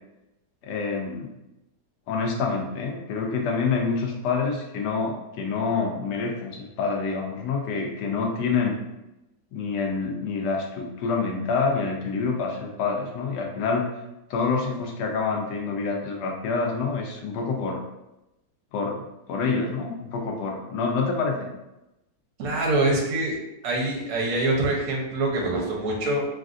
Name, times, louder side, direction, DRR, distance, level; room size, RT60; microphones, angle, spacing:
voice 1, 0.6-1.4 2.1-8.8 9.5-13.9 14.3-17.8 18.7-21.5, left 4 dB, 75° left, 1 dB, 1.2 m, -27 dB
voice 2, 22.4-23.3 23.6-26.3, right 2 dB, 65° right, -2 dB, 1.2 m, -24 dB
3.2 x 2.5 x 2.4 m, 0.93 s
omnidirectional pair, 1.8 m